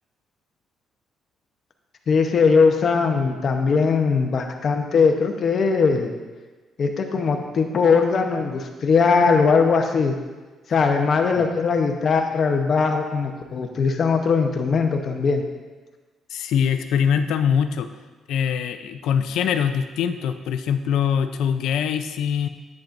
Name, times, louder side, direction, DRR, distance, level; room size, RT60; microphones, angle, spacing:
voice 1, 2.1-6.1 6.8-10.2 10.7-15.4, left 5 dB, 40° left, 3 dB, 0.9 m, -20 dB
voice 2, 16.3-17.9 18.3-22.5, left 8 dB, 85° left, 9 dB, 0.5 m, -23 dB
10.5 x 8.5 x 2.6 m, 1.3 s
cardioid pair, 150°, 0 cm